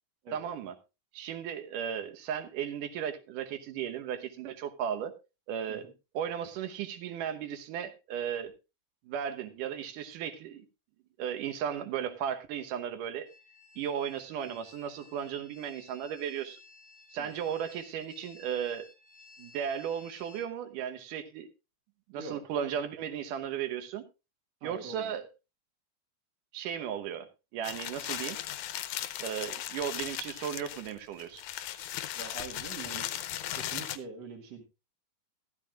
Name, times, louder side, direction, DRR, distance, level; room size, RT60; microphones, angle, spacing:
voice 1, 0.3-0.8 1.1-5.1 5.5-5.9 6.1-8.5 9.1-10.7 11.2-13.3 13.8-16.6 17.1-18.9 19.4-21.5 22.1-24.0 24.6-25.3 26.5-27.3 27.5-28.4 29.2-31.4, right 8 dB, 75° right, 2.7 m, -35 dB
sound 1, 13.2-20.5, left 4 dB, 15° right, 1.6 m, -56 dB
voice 2, 22.1-22.5 24.6-25.1 32.2-33.1 33.5-34.6, right 4 dB, 55° right, 2.7 m, -44 dB
sound 2, 27.6-34.0, left 12 dB, 75° left, 2.0 m, -37 dB
14.0 x 13.5 x 2.4 m
omnidirectional pair, 3.7 m